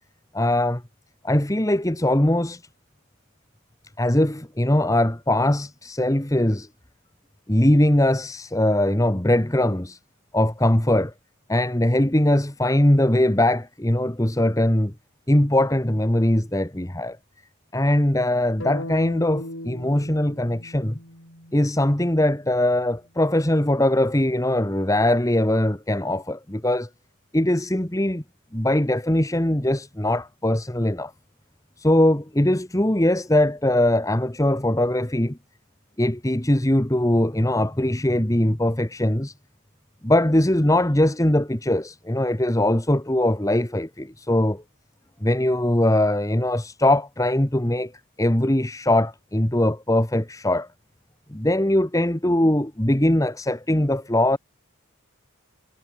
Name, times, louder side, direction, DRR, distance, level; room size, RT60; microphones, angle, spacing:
voice 1, 0.3-0.8 1.2-2.6 4.0-6.7 7.5-10.0 10.3-11.1 11.5-14.9 15.3-17.2 17.7-21.0 21.5-26.9 27.3-28.2 28.5-31.1 31.8-35.4 36.0-39.3 40.0-44.6 45.2-47.9 48.2-50.7 51.3-54.4, left 1 dB, 15° left, 1.3 m, -21 dB
sound 1, 18.6-22.6, left 1 dB, 60° left, 8.0 m, -38 dB
head